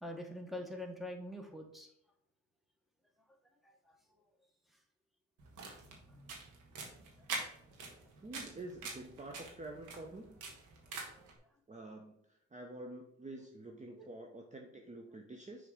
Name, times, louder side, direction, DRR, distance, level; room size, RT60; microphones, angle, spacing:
voice 1, 0.0-1.9 3.6-4.0 11.0-11.3 14.0-14.1, left 1 dB, ahead, 2 dB, 1.4 m, -45 dB
sound 1, 5.4-11.3, right 3 dB, 85° right, 1.7 m, -45 dB
voice 2, 8.2-10.4 11.7-12.2 12.5-15.7, right 2 dB, 25° right, 2 dB, 0.8 m, -48 dB
6.6 x 3.6 x 5.0 m, 0.74 s
cardioid pair, 90°, 30 cm